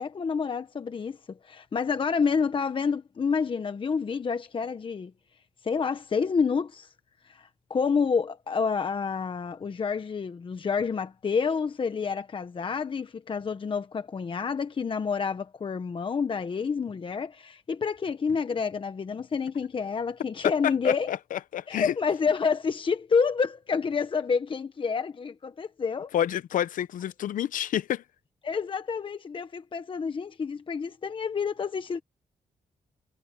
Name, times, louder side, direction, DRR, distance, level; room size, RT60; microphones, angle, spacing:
voice 1, 0.0-5.1 5.6-6.9 7.2-21.1 21.7-26.1 28.4-32.0, left 5 dB, 40° left, 1.1 m, -28 dB
voice 2, 20.4-21.9 26.1-28.0, left 10 dB, 80° left, 0.8 m, -29 dB
cardioid pair, 100°, 13 cm